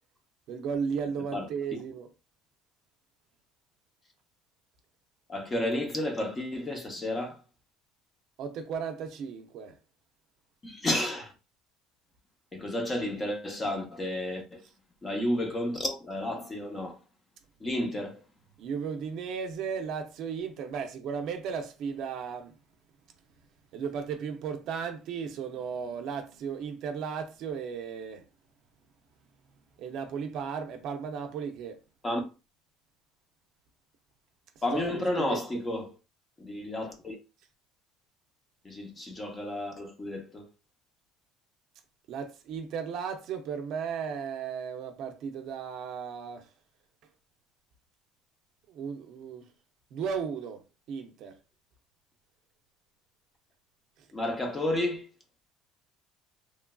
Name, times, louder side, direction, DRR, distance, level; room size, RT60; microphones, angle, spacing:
voice 1, 0.5-2.1 8.4-9.8 18.6-22.6 23.7-28.3 29.8-31.8 34.7-35.4 42.1-46.5 48.7-49.5 49.9-50.6 50.9-51.4, right 6 dB, 55° right, 0.5 m, -35 dB
voice 2, 1.3-1.8 5.3-7.4 10.6-11.3 12.5-14.6 15.0-17.0 17.6-18.2 32.0-32.2 34.6-35.9 36.4-37.2 38.6-40.5 54.1-55.1, left 1 dB, 20° left, 0.7 m, -31 dB
3.0 x 2.4 x 2.2 m
cardioid pair, 145°, 0 cm